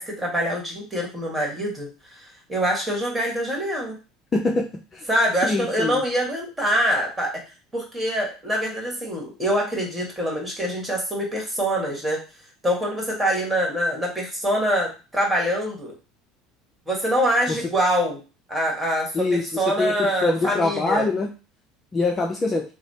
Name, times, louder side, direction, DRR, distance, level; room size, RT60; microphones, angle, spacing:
voice 1, 0.0-4.0 5.1-7.3 7.7-12.2 12.6-15.9 16.9-18.2 18.5-21.0, equal, 10° right, -1 dB, 1.5 m, -24 dB
voice 2, 4.3-4.6 4.9-5.1 5.4-6.0 19.1-21.3 21.9-22.6, left 3 dB, 25° left, 1 dB, 0.5 m, -24 dB
3.1 x 2.1 x 4.1 m, 0.32 s
supercardioid pair, 105°, 0 cm